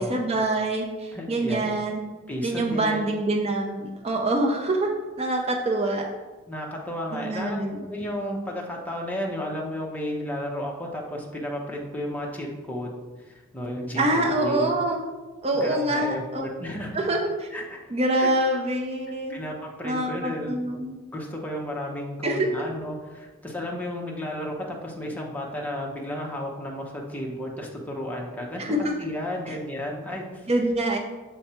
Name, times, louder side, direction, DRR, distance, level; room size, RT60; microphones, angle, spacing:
voice 1, 0.0-2.0 2.4-4.9 5.2-6.0 7.1-7.8 13.9-15.0 15.4-16.5 16.9-17.5 17.9-19.4 19.8-21.0 22.2-22.5 28.6-28.9 29.5-29.6 30.5-31.0, right 1 dB, 30° right, 1 dB, 0.5 m, -25 dB
voice 2, 1.1-1.8 2.3-3.0 6.5-7.6 7.8-14.7 15.6-16.9 17.5-17.9 18.2-18.3 19.3-20.8 21.1-24.5 24.8-30.5, equal, 10° left, -2 dB, 0.8 m, -33 dB
6.8 x 3.2 x 4.3 m, 1.2 s
head